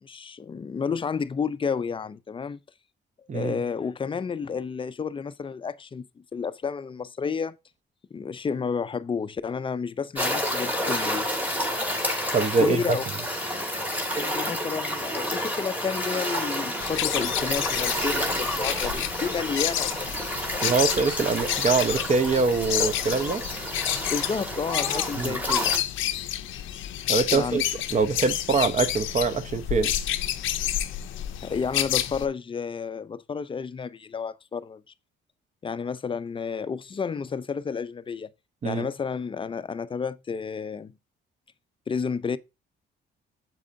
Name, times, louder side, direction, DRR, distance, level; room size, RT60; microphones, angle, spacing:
voice 1, 0.0-2.6 3.3-7.6 8.1-11.3 12.6-13.0 14.1-20.7 24.1-25.8 27.3-27.6 31.4-34.8 35.6-38.3 38.6-40.9 41.9-42.4, left 6 dB, 25° left, 0.4 m, -31 dB
sound 1, 10.2-25.8, equal, 10° right, 1.7 m, -30 dB
voice 2, 12.3-13.0 20.6-23.4 25.2-25.4 27.1-27.6 27.9-29.9 38.6-38.9, right 4 dB, 35° right, 0.8 m, -24 dB
sound 2, 16.8-32.2, left 12 dB, 80° left, 0.5 m, -30 dB
7.6 x 4.9 x 2.6 m
cardioid pair, 90°, 20 cm